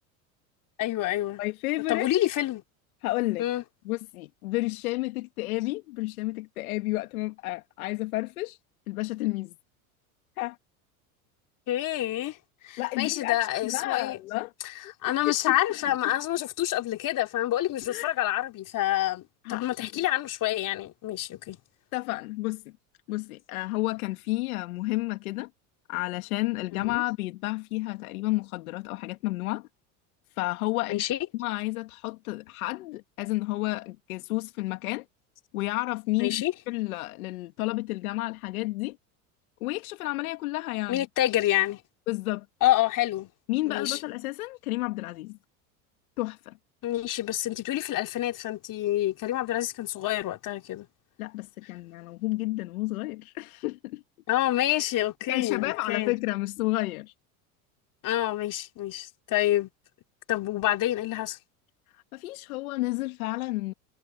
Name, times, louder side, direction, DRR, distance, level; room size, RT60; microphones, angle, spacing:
voice 1, 0.8-1.4 1.9-2.6 3.4-3.6 11.7-12.4 12.6-14.2 15.0-21.6 26.9-27.0 30.9-31.2 36.2-36.5 40.9-41.8 42.6-43.3 43.7-44.0 46.8-50.9 54.3-56.1 58.0-59.7 60.3-61.4, left 14 dB, 45° left, 3.2 m, -27 dB
voice 2, 1.4-2.1 3.0-3.4 3.9-8.6 8.9-9.5 10.4-10.6 12.8-14.5 15.3-15.6 15.9-16.0 17.9-18.1 19.4-19.9 21.9-22.6 23.1-25.5 25.9-29.7 30.4-31.0 31.3-35.1 35.5-39.0 39.6-41.0 42.1-42.5 43.5-45.4 46.2-46.6 51.2-54.0 55.3-57.1 62.1-63.7, left 20 dB, 80° left, 1.9 m, -31 dB
hypercardioid pair, 95°, 43 cm